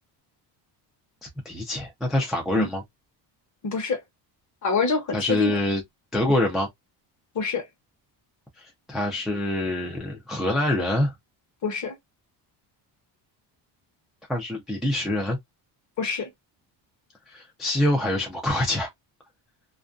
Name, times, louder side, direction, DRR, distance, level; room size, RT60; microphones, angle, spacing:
voice 1, 1.2-2.8 5.1-5.8 6.1-6.7 8.6-11.1 14.3-15.4 17.3-18.9, left 1 dB, ahead, 0.4 m, -25 dB
voice 2, 3.6-4.0 4.6-5.5 7.3-7.6 11.6-11.9 16.0-16.3, left 4 dB, 40° left, 0.9 m, -26 dB
2.5 x 2.1 x 2.4 m
cardioid pair, 155°, 44 cm